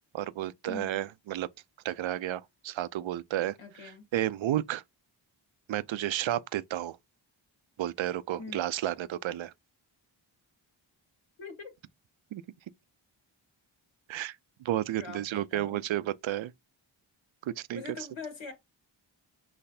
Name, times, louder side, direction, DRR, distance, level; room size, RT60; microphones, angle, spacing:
voice 1, 0.1-1.5 1.8-4.8 5.7-7.0 7.8-9.5 12.3-12.4 14.1-16.5 17.4-18.1, right 13 dB, 70° right, 0.5 m, -32 dB
voice 2, 0.7-1.0 3.6-4.0 8.4-8.7 11.4-11.7 15.0-15.8 17.7-18.5, left 4 dB, 75° left, 1.6 m, -42 dB
5.9 x 3.2 x 2.7 m
cardioid pair, 40°, 48 cm